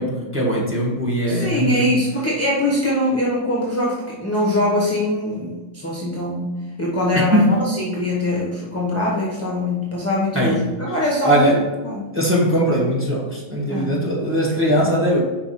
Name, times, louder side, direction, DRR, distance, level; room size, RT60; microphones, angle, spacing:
voice 1, 0.0-1.8 7.1-7.6 10.3-10.7 11.2-11.6 12.1-15.2, equal, 10° right, -3 dB, 1.6 m, -20 dB
voice 2, 1.3-12.1 13.7-14.1 14.8-14.9, left 1 dB, 10° left, -5 dB, 1.1 m, -23 dB
5.8 x 4.6 x 4.3 m, 1.3 s
omnidirectional pair, 1.4 m